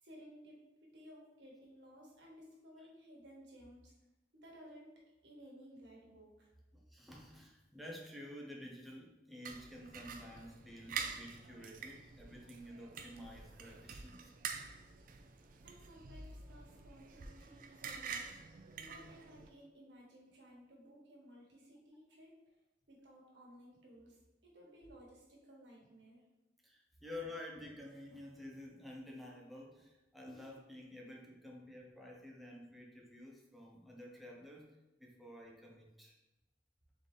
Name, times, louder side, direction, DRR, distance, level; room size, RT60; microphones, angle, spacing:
voice 1, 0.0-3.9 4.4-6.5 15.6-18.4 18.8-22.5 22.9-26.2, equal, 90° right, -3 dB, 1.4 m, -57 dB
voice 2, 6.7-14.4 26.6-34.7 35.0-36.1, left 1 dB, ahead, -2 dB, 0.7 m, -51 dB
sound 1, 9.4-19.5, right 6 dB, 50° right, 0.4 m, -47 dB
4.0 x 3.4 x 3.7 m, 1.0 s
head